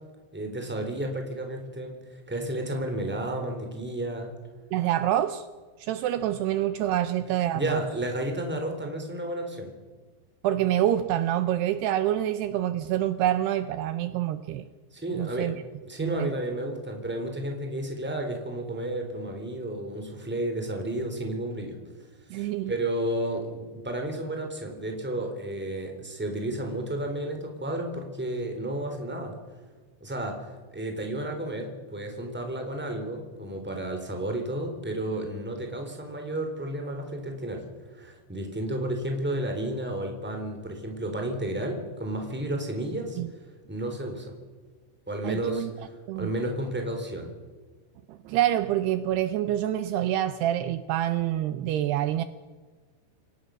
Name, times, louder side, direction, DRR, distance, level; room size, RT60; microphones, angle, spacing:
voice 1, 0.3-4.3 7.5-9.7 14.9-15.5 15.8-21.8 22.3-29.3 30.0-37.6 37.9-43.2 43.7-44.3 45.1-45.7 46.1-47.3, right 1 dB, 5° right, 3 dB, 3.0 m, -32 dB
voice 2, 4.7-5.5 5.8-7.8 10.4-14.7 15.1-15.5 16.0-16.3 22.3-22.7 43.2-43.3 45.2-45.7 46.1-46.3 48.1-52.2, right 12 dB, 80° right, 11 dB, 2.6 m, -26 dB
28.5 x 17.5 x 6.5 m, 1.4 s
omnidirectional pair, 5.1 m